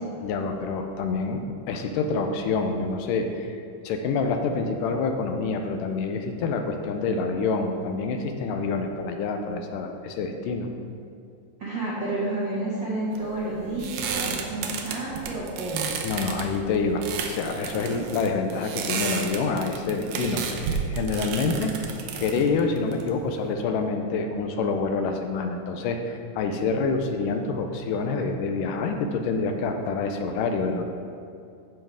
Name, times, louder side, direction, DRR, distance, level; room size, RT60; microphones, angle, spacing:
voice 1, 0.2-1.4 1.7-10.7 16.0-21.7 22.1-30.8, left 4 dB, 80° left, 5 dB, 2.1 m, -27 dB
voice 2, 11.6-16.0, right 2 dB, 55° right, -8 dB, 1.3 m, -30 dB
sound 1, 13.1-23.5, right 6 dB, 75° right, 2.3 m, -32 dB
14.5 x 5.6 x 3.5 m, 2.5 s
omnidirectional pair, 3.9 m